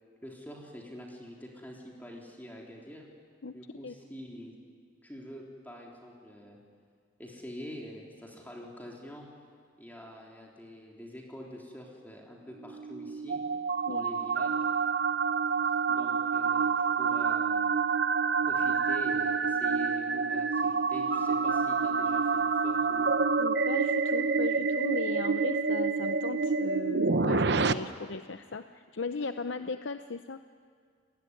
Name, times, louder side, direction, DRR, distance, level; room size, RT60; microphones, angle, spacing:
voice 1, 0.2-3.1 3.5-4.6 5.0-6.6 7.2-9.3 9.8-13.4 13.9-14.5 15.9-17.7 18.4-23.2, equal, 10° left, -2 dB, 3.6 m, -45 dB
sound 1, 12.6-27.7, right 5 dB, 60° right, 0.8 m, -28 dB
voice 2, 23.4-30.4, left 4 dB, 70° left, 9 dB, 0.7 m, -37 dB
29.0 x 20.0 x 9.8 m, 2.1 s
head